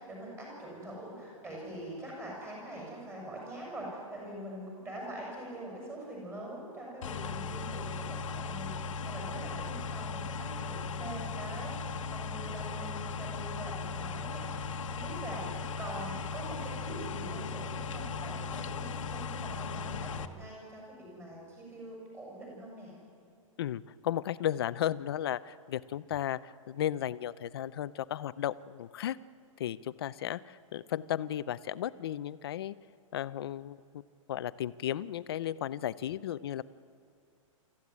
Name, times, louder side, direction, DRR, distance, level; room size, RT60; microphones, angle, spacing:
voice 1, 0.0-23.0, right 1 dB, 15° right, -2 dB, 6.9 m, -44 dB
sound 1, 7.0-20.3, left 4 dB, 65° left, 1.3 m, -37 dB
voice 2, 23.6-29.2 29.6-32.7 33.1-33.8 34.3-36.6, left 11 dB, 45° left, 16 dB, 0.5 m, -34 dB
25.0 x 14.5 x 9.6 m, 2.4 s
hypercardioid pair, 170°, 18 cm